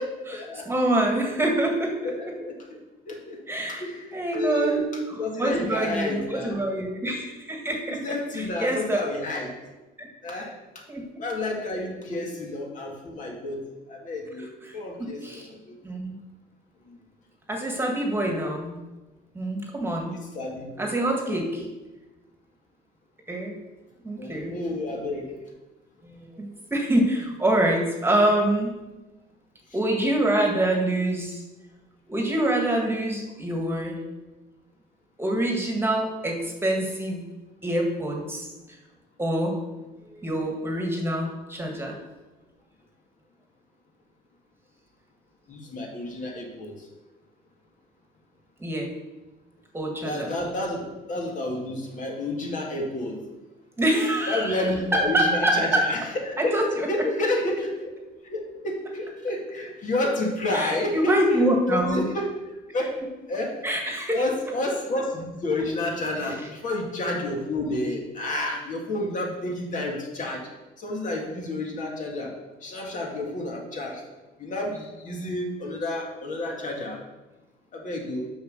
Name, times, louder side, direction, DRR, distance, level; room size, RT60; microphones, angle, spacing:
voice 1, 0.0-0.7 1.2-1.3 2.0-2.5 3.1-3.4 3.7-4.8 5.2-6.6 8.0-9.5 10.2-10.5 11.2-13.6 13.9-15.7 16.9-17.0 20.0-20.9 21.3-21.7 24.2-25.3 45.5-46.7 50.0-53.2 54.3-56.0 56.3-57.9 58.2-61.4 61.7-62.3 62.7-63.0 63.3-63.5 64.1-70.5 70.8-72.3 72.6-74.0 74.4-77.0 77.7-78.3, left 2 dB, 50° left, 0 dB, 2.1 m, -30 dB
voice 2, 0.6-2.4 3.5-3.9 4.1-4.8 5.1-9.0 10.0-10.1 10.9-11.2 14.6-15.5 15.8-16.1 17.5-18.8 19.4-20.2 20.8-21.6 23.3-23.6 24.0-24.6 26.0-28.7 29.7-31.4 32.1-34.0 35.2-37.2 37.6-38.5 39.2-39.6 40.0-42.0 48.6-48.9 49.7-50.3 53.8-55.9 56.4-57.1 60.5-62.0 63.6-64.3 66.2-66.5, right 1 dB, 15° right, 1 dB, 1.7 m, -26 dB
7.0 x 5.8 x 6.6 m, 1.1 s
cardioid pair, 110°, 17 cm